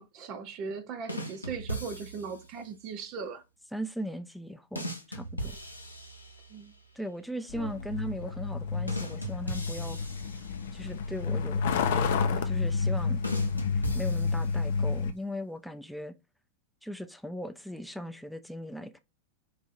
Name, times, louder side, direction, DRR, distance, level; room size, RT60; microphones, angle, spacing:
voice 1, 0.0-3.4 6.5-6.7 7.6-7.8, right 5 dB, 40° right, 0.6 m, -39 dB
sound 1, 1.1-2.5 4.7-6.7 8.9-11.0 13.2-14.8, equal, 85° left, 0.8 m, -38 dB
voice 2, 3.7-5.6 6.9-10.0 10.7-11.6 11.9-13.2 13.7-16.1 16.8-19.0, equal, ahead, 0.6 m, -38 dB
Truck, 7.5-15.1, left 4 dB, 55° left, 0.6 m, -30 dB
4.6 x 2.7 x 4.1 m
figure-of-eight pair, 90°, 0 cm